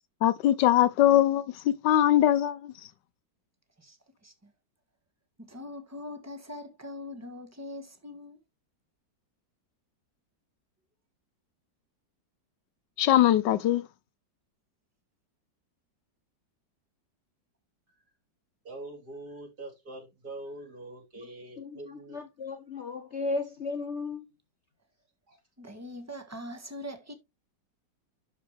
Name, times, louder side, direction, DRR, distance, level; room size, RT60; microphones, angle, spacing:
voice 1, 0.2-2.7 13.0-13.8, left 12 dB, 80° left, 1.3 m, -22 dB
voice 2, 5.4-8.4 25.6-27.1, left 1 dB, 10° right, 1.3 m, -42 dB
voice 3, 18.6-22.2 25.3-25.4, right 2 dB, 60° right, 3.6 m, -43 dB
voice 4, 21.6-24.3, left 3 dB, 50° left, 0.9 m, -35 dB
11.5 x 4.9 x 3.3 m
omnidirectional pair, 1.9 m